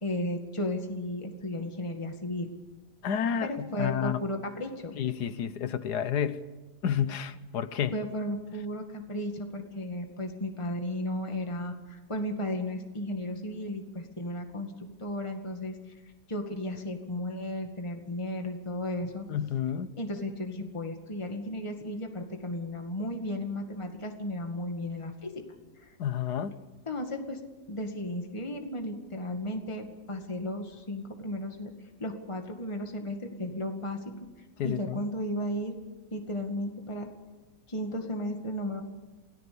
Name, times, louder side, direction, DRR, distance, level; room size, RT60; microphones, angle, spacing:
voice 1, 0.0-2.5 3.4-5.0 7.9-14.7 15.0-15.8 16.3-19.3 20.0-25.3 25.8-25.9 26.9-27.4 27.7-31.7 32.0-34.0 34.6-35.8 36.1-37.1 37.7-38.8, left 1 dB, 20° left, 4 dB, 2.1 m, -34 dB
voice 2, 3.0-4.2 4.9-6.4 6.8-7.9 19.3-19.9 26.0-26.6 34.6-35.1, left 8 dB, 75° left, 14 dB, 1.5 m, -30 dB
28.5 x 18.0 x 6.9 m, 1.2 s
omnidirectional pair, 1.8 m